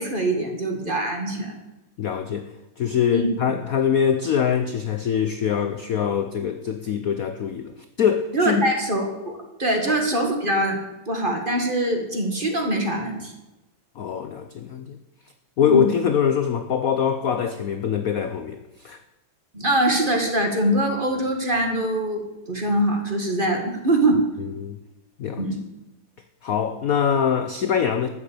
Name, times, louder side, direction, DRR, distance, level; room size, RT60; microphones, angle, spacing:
voice 1, 0.0-1.6 3.1-3.3 8.3-10.8 11.1-13.3 15.6-15.9 19.5-22.2 22.5-24.2 25.4-25.6, right 1 dB, 25° right, 3 dB, 2.0 m, -23 dB
voice 2, 2.0-2.5 2.8-7.7 8.0-8.7 9.9-10.0 14.0-15.0 15.6-19.0 24.6-24.8 25.2-25.4 26.4-28.1, left 8 dB, 65° left, 9 dB, 0.8 m, -23 dB
13.0 x 7.1 x 8.6 m, 0.99 s
omnidirectional pair, 2.4 m